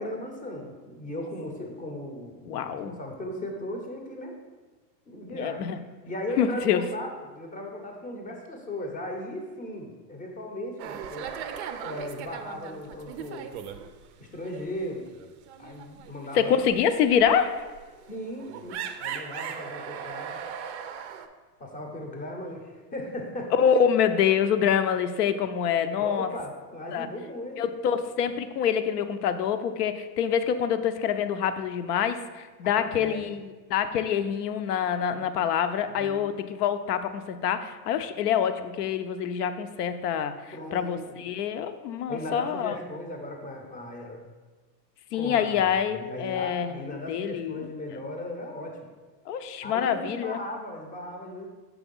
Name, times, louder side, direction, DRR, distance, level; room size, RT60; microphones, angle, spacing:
voice 1, 0.0-4.3 5.1-5.6 6.1-11.3 11.8-13.6 14.2-15.0 15.6-16.5 18.1-20.4 21.6-23.5 25.9-27.6 32.7-33.2 35.1-35.6 35.8-36.3 40.5-41.2 42.1-44.2 45.1-48.9 49.6-51.5, left 1 dB, 15° left, 2 dB, 0.7 m, -37 dB
voice 2, 2.5-2.9 5.3-5.7 6.4-6.8 16.3-17.6 23.5-26.3 26.9-27.1 27.6-42.8 45.1-47.7 49.3-50.4, left 8 dB, 65° left, 10 dB, 0.7 m, -26 dB
sound 1, 10.8-14.1 14.4-14.7 15.1-21.3, right 8 dB, 45° right, 0.5 m, -38 dB
6.0 x 3.4 x 5.3 m, 1.3 s
supercardioid pair, 135°, 50 cm